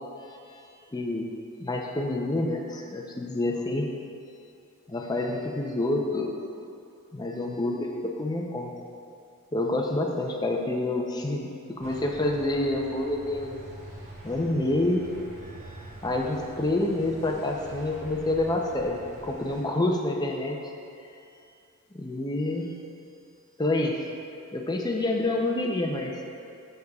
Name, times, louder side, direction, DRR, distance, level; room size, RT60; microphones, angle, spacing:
voice 1, 0.9-1.3 1.6-3.9 4.9-6.3 7.1-8.7 9.5-11.5 11.8-13.6 14.2-15.1 15.5-20.6 21.9-22.7 23.6-24.0 24.5-26.3, left 2 dB, 20° left, 1 dB, 0.6 m, -28 dB
sound 1, 11.8-19.6, right 1 dB, 35° right, 1.0 m, -45 dB
10.5 x 6.7 x 2.3 m, 2.6 s
head